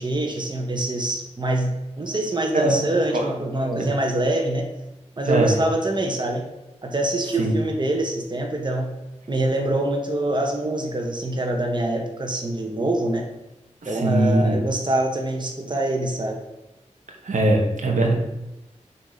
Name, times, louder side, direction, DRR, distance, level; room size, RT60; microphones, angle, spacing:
voice 1, 0.0-1.7 2.0-4.7 5.2-6.4 6.8-8.9 9.3-13.2 13.9-16.4, right 1 dB, 35° right, 1 dB, 1.0 m, -24 dB
voice 2, 13.8-14.6 17.2-18.1, right 2 dB, 85° right, 0 dB, 1.1 m, -21 dB
6.5 x 2.9 x 5.0 m, 0.97 s
wide cardioid pair, 70°, 13 cm